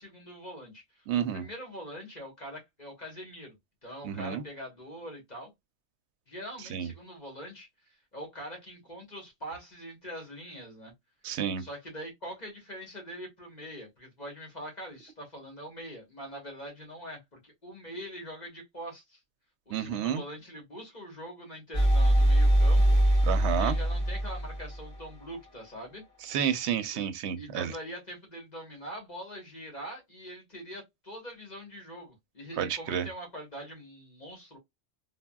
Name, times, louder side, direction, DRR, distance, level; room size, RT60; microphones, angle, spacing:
voice 1, 0.0-3.6 3.8-5.5 6.3-10.9 11.6-19.2 19.7-23.0 23.4-26.0 26.9-27.0 27.3-34.6, equal, 40° left, 1.2 m, -43 dB
voice 2, 1.1-1.4 4.0-4.4 6.7-6.9 11.2-11.6 19.7-20.2 23.3-23.8 26.3-27.7 32.6-33.1, right 9 dB, 75° right, 0.8 m, -30 dB
sound 1, 21.7-25.5, right 1 dB, 5° left, 1.7 m, -23 dB
3.4 x 2.2 x 2.2 m
omnidirectional pair, 1.2 m